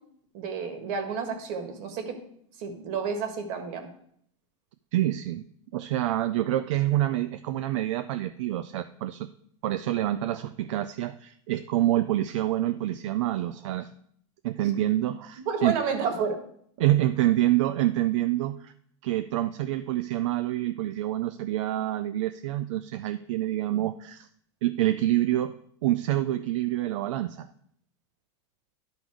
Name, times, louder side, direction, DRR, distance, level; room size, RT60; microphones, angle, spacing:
voice 1, 0.3-2.2 2.6-3.9 15.5-16.4, right 5 dB, 45° right, 5 dB, 1.5 m, -30 dB
voice 2, 4.9-5.4 5.7-9.3 9.6-13.9 14.4-15.7 16.8-18.7 19.0-24.3 24.6-25.5 25.8-27.5, right 14 dB, 65° right, 10 dB, 0.4 m, -27 dB
11.5 x 3.9 x 4.7 m, 0.66 s
supercardioid pair, 145°, 17 cm